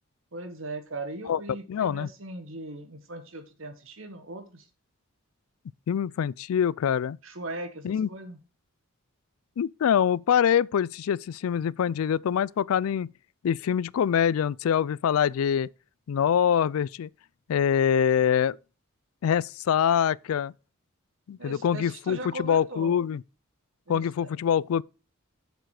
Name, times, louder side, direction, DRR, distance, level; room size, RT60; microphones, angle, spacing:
voice 1, 0.3-4.7 7.2-8.4 21.4-22.9 23.9-24.3, right 2 dB, 65° right, 1.4 m, -39 dB
voice 2, 1.7-2.1 5.9-7.2 7.8-8.1 9.6-13.1 13.4-15.7 16.1-17.1 17.5-18.6 19.2-20.5 21.3-23.2 23.9-24.8, left 8 dB, 85° left, 0.3 m, -24 dB
7.6 x 7.2 x 4.8 m
head